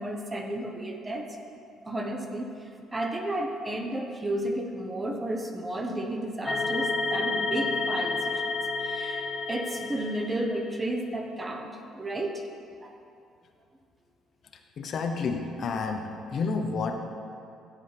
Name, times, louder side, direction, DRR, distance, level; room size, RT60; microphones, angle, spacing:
voice 1, 0.0-1.4 1.8-13.0, right 1 dB, 20° right, 3 dB, 1.1 m, -33 dB
sound 1, 6.4-10.7, left 3 dB, 20° left, 1.5 m, -30 dB
voice 2, 14.8-17.0, left 4 dB, 50° left, 5 dB, 0.9 m, -30 dB
14.5 x 7.8 x 3.4 m, 2.5 s
cardioid pair, 100°, 0 cm